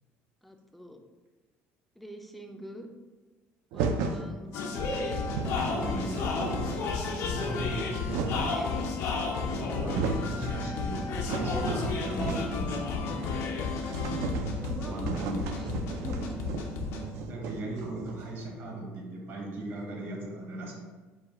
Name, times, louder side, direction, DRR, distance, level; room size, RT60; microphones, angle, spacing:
voice 1, 0.4-1.0 2.0-2.9 3.7-4.6 7.9-8.0 8.4-8.9 14.5-16.4, equal, ahead, 3 dB, 0.4 m, -45 dB
sound 1, 3.7-4.3 4.9-5.0 5.2-5.7 6.1-7.0 7.6-8.6 9.4-9.5 9.7-10.3 10.7-12.7 13.0-13.1 13.4-13.5 13.8-18.4, right 5 dB, 80° right, 0.4 m, -34 dB
sound 2, 4.5-17.1, left 4 dB, 70° left, 0.6 m, -32 dB
voice 2, 5.6-6.4 7.3-8.2 9.5-13.0 14.9-15.5 17.3-20.7, right 2 dB, 55° right, -1 dB, 1.0 m, -37 dB
4.7 x 2.2 x 3.6 m, 1.3 s
cardioid pair, 130°, 5 cm